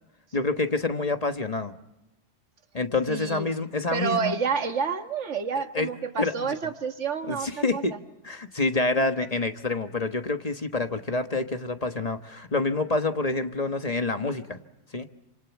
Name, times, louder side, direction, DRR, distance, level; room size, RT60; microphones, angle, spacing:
voice 1, 0.3-1.7 2.7-4.3 5.7-5.9 6.2-6.6 7.3-8.0 8.2-14.6 14.9-15.1, left 3 dB, 35° left, 8 dB, 1.3 m, -27 dB
voice 2, 3.1-3.5 3.9-7.8, right 6 dB, 85° right, 7 dB, 1.9 m, -29 dB
28.5 x 26.0 x 7.2 m, 0.94 s
omnidirectional pair, 1.2 m